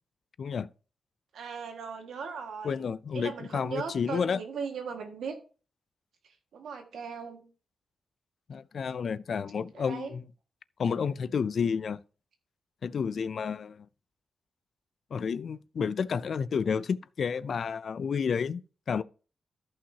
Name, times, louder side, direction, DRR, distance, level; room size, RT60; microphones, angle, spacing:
voice 1, 0.4-0.7 2.6-4.4 8.5-10.2 10.8-12.0 12.8-13.9 15.1-18.6 18.9-19.0, left 6 dB, 50° left, 0.3 m, -30 dB
voice 2, 1.3-2.9 3.1-5.3 6.5-7.5 9.7-10.1, right 5 dB, 85° right, 1.7 m, -38 dB
14.0 x 5.7 x 2.8 m
wide cardioid pair, 175°, 0 cm